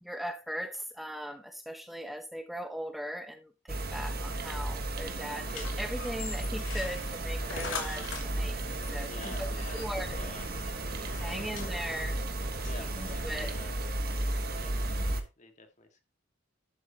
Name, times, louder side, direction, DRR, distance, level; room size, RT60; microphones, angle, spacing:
voice 1, 0.0-8.6 8.9-9.1 9.4-10.2 11.2-12.2 12.7-13.5, equal, ahead, 1.1 m, -39 dB
sound 1, 3.7-15.2, right 1 dB, 50° right, 1.4 m, -34 dB
sound 2, 5.4-13.5, left 4 dB, 80° left, 2.7 m, -43 dB
voice 2, 8.9-9.9 10.1-11.8 12.7-13.8 14.5-16.0, left 3 dB, 40° left, 2.0 m, -50 dB
11.5 x 8.0 x 3.0 m
head